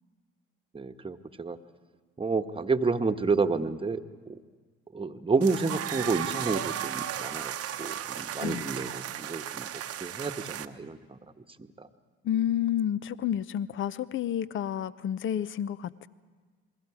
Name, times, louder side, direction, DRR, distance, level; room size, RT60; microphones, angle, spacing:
voice 1, 0.7-1.6 2.2-4.0 4.3-4.4 4.9-7.5 7.8-9.7 10.0-11.2 11.6-11.9, right 4 dB, 20° right, 7 dB, 1.2 m, -30 dB
sound 1, 5.4-10.7, right 10 dB, 55° right, 0.9 m, -35 dB
voice 2, 12.2-16.1, left 10 dB, 45° left, 17 dB, 0.7 m, -30 dB
28.5 x 21.0 x 4.8 m, 1.5 s
hypercardioid pair, 60°, 29 cm